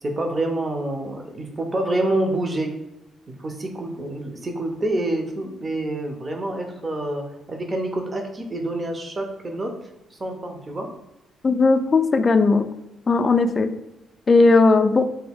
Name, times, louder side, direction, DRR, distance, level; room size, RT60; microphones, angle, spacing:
voice 1, 0.0-2.7 3.4-9.8 10.1-10.9, right 1 dB, 30° right, 3 dB, 0.6 m, -27 dB
voice 2, 11.4-12.6 13.1-13.7 14.3-15.0, left 3 dB, 35° left, 8 dB, 0.3 m, -17 dB
3.4 x 2.3 x 3.4 m, 0.92 s
cardioid pair, 90°, 0 cm